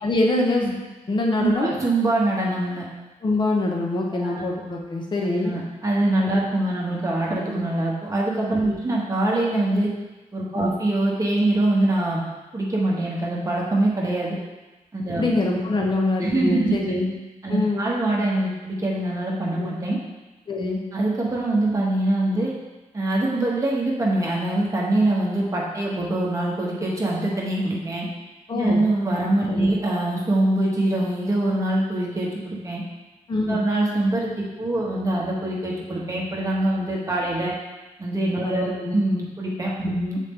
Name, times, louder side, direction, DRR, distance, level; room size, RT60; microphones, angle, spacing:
voice 1, 0.0-0.8 1.1-1.7 3.2-5.5 8.6-8.8 10.5-10.7 15.2-17.1 17.5-17.8 19.6-19.7 20.5-20.8 28.5-28.8 29.5-29.7 33.3-33.6 38.4-38.9 39.8-40.0, left 2 dB, 35° left, 0 dB, 1.0 m, -24 dB
voice 2, 1.4-2.9 4.1-4.4 5.4-9.9 10.3-12.2 12.5-14.3 14.9-15.2 16.2-16.7 17.4-20.0 20.9-22.5 22.9-28.0 28.5-32.8 33.5-37.5 38.0-40.2, right 1 dB, 25° right, -4 dB, 1.1 m, -24 dB
7.3 x 4.2 x 3.6 m, 1.1 s
wide cardioid pair, 155°, 14 cm